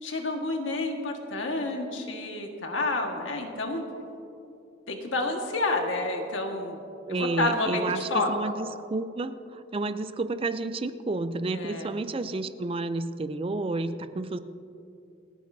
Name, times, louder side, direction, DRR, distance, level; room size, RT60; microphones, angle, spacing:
voice 1, 0.0-3.8 4.9-6.8 7.1-8.3 11.5-11.9, left 2 dB, 80° left, 2 dB, 1.6 m, -29 dB
voice 2, 7.1-14.4, right 2 dB, 30° right, 12 dB, 0.4 m, -31 dB
28.5 x 9.6 x 2.7 m, 2.7 s
head